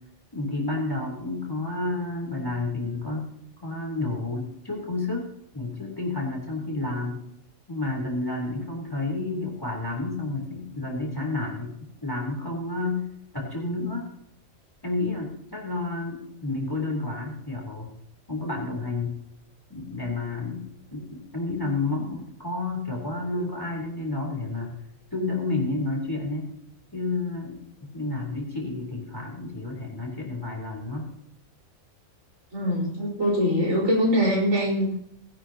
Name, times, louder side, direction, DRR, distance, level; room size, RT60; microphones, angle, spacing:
voice 1, 0.3-3.3 3.6-7.2 7.7-13.1 13.3-14.1 14.8-17.9 18.3-19.2 19.7-20.6 20.9-24.7 25.1-26.5 26.9-31.1, left 2 dB, 15° left, 0 dB, 3.6 m, -30 dB
voice 2, 32.5-34.9, equal, 85° right, -4 dB, 5.0 m, -23 dB
19.0 x 12.0 x 2.9 m, 0.71 s
omnidirectional pair, 1.4 m